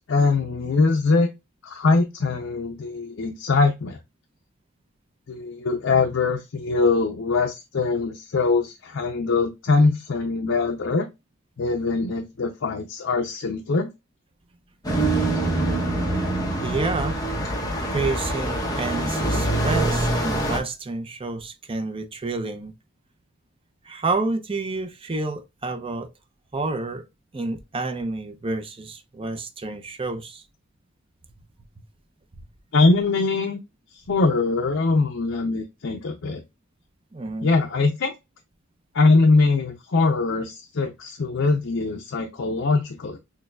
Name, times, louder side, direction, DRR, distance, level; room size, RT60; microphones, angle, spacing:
voice 1, 0.1-1.3 1.6-4.0 5.3-11.1 11.6-13.9 32.7-33.6 33.9-36.4 37.4-38.1 38.9-43.2, left 3 dB, 65° left, 0.5 m, -22 dB
sound 1, 14.8-20.6, right 1 dB, 20° left, 0.9 m, -24 dB
voice 2, 16.6-17.2 17.9-22.7 23.9-26.1 26.5-27.0 27.3-30.4 32.3-32.4 37.1-37.5, right 3 dB, 25° right, 0.5 m, -29 dB
6.3 x 2.2 x 2.2 m
head